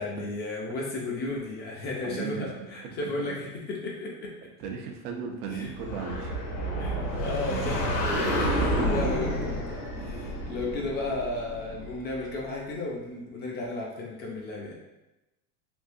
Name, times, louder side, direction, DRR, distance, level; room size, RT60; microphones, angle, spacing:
voice 1, 0.0-4.3 5.5-5.7 6.8-14.8, left 2 dB, 25° left, -2 dB, 0.3 m, -34 dB
voice 2, 2.0-2.7 3.0-3.4 4.6-6.4 6.8-7.7, right 6 dB, 90° right, 2 dB, 0.7 m, -37 dB
sound 1, 5.7-12.3, equal, 80° left, 1.2 m, -29 dB
3.5 x 2.7 x 2.5 m, 0.99 s
supercardioid pair, 135°, 45 cm